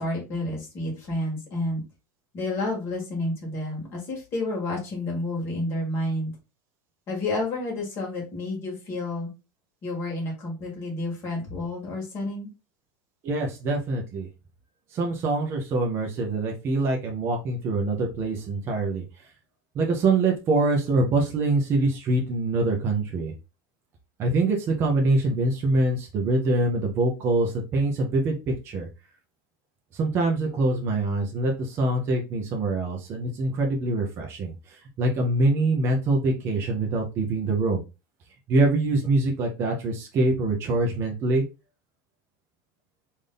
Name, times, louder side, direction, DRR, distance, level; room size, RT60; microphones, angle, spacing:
voice 1, 0.0-1.8 2.3-6.3 7.1-9.3 9.8-12.5, left 2 dB, 25° left, -2 dB, 1.6 m, -30 dB
voice 2, 13.2-14.3 14.9-19.3 19.7-23.3 24.2-28.9 29.9-37.8 38.5-41.4, right 2 dB, 25° right, 1 dB, 0.6 m, -24 dB
3.4 x 2.6 x 3.7 m, 0.28 s
supercardioid pair, 175°, 11 cm